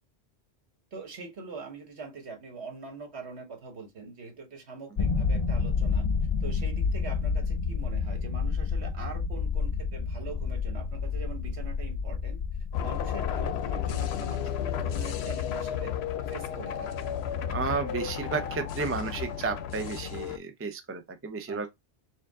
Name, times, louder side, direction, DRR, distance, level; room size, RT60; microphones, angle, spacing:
voice 1, 0.9-6.1 6.4-12.4 12.8-15.9 16.3-17.0 21.5-21.7, right 4 dB, 70° right, 1.6 m, -43 dB
sound 1, 5.0-13.9, left 5 dB, 55° left, 0.4 m, -29 dB
sound 2, 12.7-20.4, left 9 dB, 70° left, 0.8 m, -32 dB
voice 2, 17.4-21.7, right 4 dB, 20° right, 0.4 m, -32 dB
4.6 x 2.5 x 3.6 m
omnidirectional pair, 1.1 m